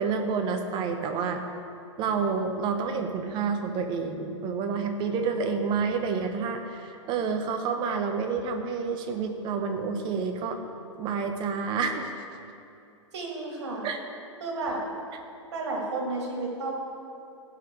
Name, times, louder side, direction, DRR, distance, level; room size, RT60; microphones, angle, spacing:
voice 1, 0.0-1.4 2.0-10.6 11.0-12.1 13.8-14.0, right 5 dB, 30° right, 5 dB, 1.1 m, -29 dB
voice 2, 13.1-13.9 14.4-14.8 15.5-16.7, right 3 dB, 60° right, -1 dB, 2.6 m, -32 dB
16.5 x 6.0 x 4.8 m, 2.6 s
figure-of-eight pair, 105°, 16 cm